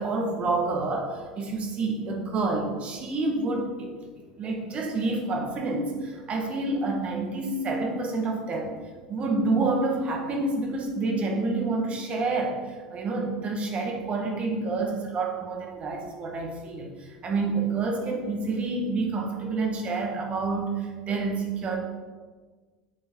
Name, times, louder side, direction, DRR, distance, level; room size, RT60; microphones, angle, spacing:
voice 1, 0.0-4.1 4.4-8.8 9.1-21.8, right 3 dB, 35° right, 1 dB, 1.8 m, -28 dB
7.6 x 7.4 x 4.7 m, 1.4 s
figure-of-eight pair, 75°, 4 cm